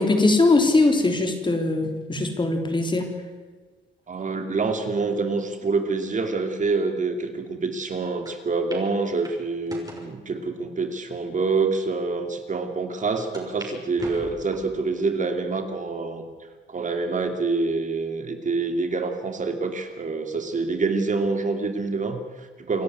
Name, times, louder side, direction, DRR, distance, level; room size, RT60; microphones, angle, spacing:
voice 1, 0.0-3.1, left 2 dB, 25° left, 5 dB, 3.5 m, -21 dB
voice 2, 4.1-16.3 16.7-22.8, right 3 dB, 40° right, 6 dB, 2.5 m, -26 dB
sound 1, 8.3-8.4 8.7-8.9 9.2-10.1 10.8-10.9 11.6-11.7 12.0-12.1 13.3-13.7 14.0-14.8 15.3-15.8 16.3-16.4 17.5-18.0, right 2 dB, 20° right, 6.0 m, -41 dB
27.5 x 11.5 x 9.5 m, 1.4 s
cardioid pair, 90°, 20 cm